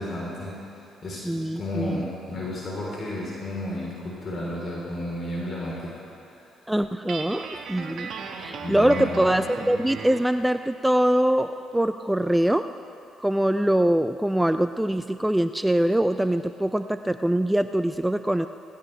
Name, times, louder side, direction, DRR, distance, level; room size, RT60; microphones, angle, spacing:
voice 1, 0.0-6.0 6.3-6.4 8.6-9.2, left 1 dB, 45° left, -5 dB, 3.9 m, -33 dB
voice 2, 1.3-2.1 6.7-8.1 8.4-12.7 13.2-18.5, right 1 dB, 5° right, 10 dB, 0.4 m, -23 dB
Guitar, 7.1-10.3, right 5 dB, 65° right, 1.4 m, -36 dB
18.0 x 16.5 x 3.4 m, 2.7 s
supercardioid pair, 65°, 0 cm